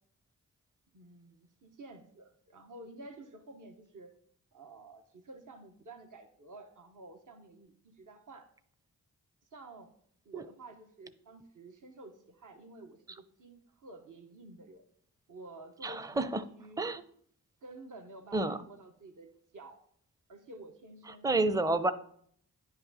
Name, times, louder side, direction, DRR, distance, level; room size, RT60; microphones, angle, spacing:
voice 1, 0.9-4.1 4.5-8.5 9.5-9.9 10.2-14.8 15.3-16.1 16.6-16.9 17.6-19.3 19.5-19.8 20.3-21.3 21.7-21.9, right 2 dB, 50° right, 5 dB, 1.1 m, -51 dB
voice 2, 15.8-16.4 16.8-17.0 18.3-18.6 21.1-21.9, right 2 dB, 10° right, 12 dB, 0.6 m, -29 dB
10.0 x 5.6 x 4.2 m, 0.63 s
cardioid pair, 40°, 39 cm